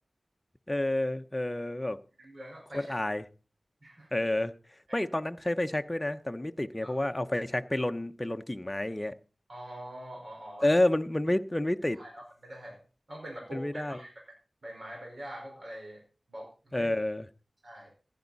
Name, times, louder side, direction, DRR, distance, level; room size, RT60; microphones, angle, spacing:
voice 1, 0.7-2.0 2.7-3.2 4.1-4.5 4.9-9.1 10.6-12.0 13.5-14.0 16.7-17.3, left 1 dB, 20° left, 1.0 m, -29 dB
voice 2, 2.2-3.0 3.8-4.2 4.9-5.0 6.8-6.9 9.5-10.8 11.9-12.8 13.1-14.1 14.6-16.0 16.3-16.9 17.6-17.9, right 1 dB, 55° right, 5.0 m, -44 dB
15.5 x 11.5 x 4.1 m
wide cardioid pair, 60°, 0 cm